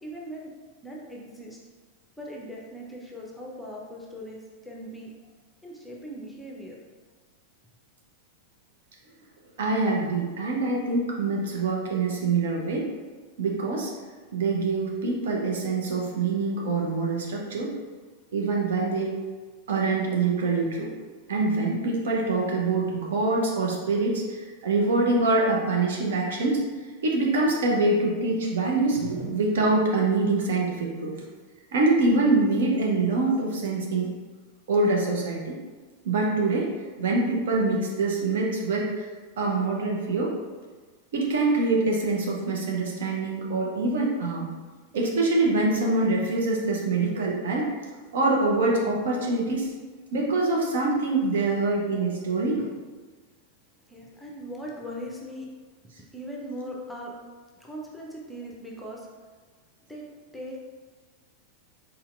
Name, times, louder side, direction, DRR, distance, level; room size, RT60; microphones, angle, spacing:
voice 1, 0.0-0.5 0.8-1.6 2.2-5.1 5.6-6.8 53.9-55.5 56.1-57.2 57.6-59.1 59.9-60.0 60.3-60.6, equal, ahead, -3 dB, 0.8 m, -39 dB
voice 2, 9.6-12.9 13.4-13.9 14.3-17.7 18.3-19.2 19.7-20.9 21.3-26.6 27.0-31.2 31.7-34.1 34.7-35.6 36.0-36.7 37.0-39.1 39.4-40.3 41.1-44.5 44.9-47.7 48.1-49.7 50.1-52.7, right 3 dB, 60° right, -2 dB, 0.8 m, -25 dB
4.3 x 4.2 x 2.5 m, 1.4 s
figure-of-eight pair, 90°, 0 cm